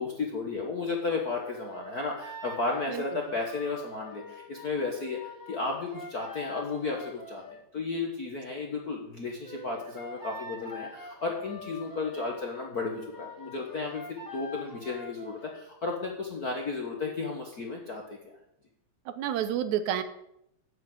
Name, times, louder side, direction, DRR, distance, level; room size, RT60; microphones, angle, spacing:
voice 1, 0.0-5.2 5.5-14.0 14.3-18.3, left 3 dB, 55° left, 1 dB, 1.1 m, -33 dB
sound 1, 1.4-7.6 9.4-15.6, left 2 dB, 10° left, 1.5 m, -44 dB
voice 2, 2.9-3.2 19.1-20.0, right 10 dB, 85° right, 11 dB, 2.2 m, -30 dB
8.8 x 7.7 x 7.7 m, 0.78 s
omnidirectional pair, 3.3 m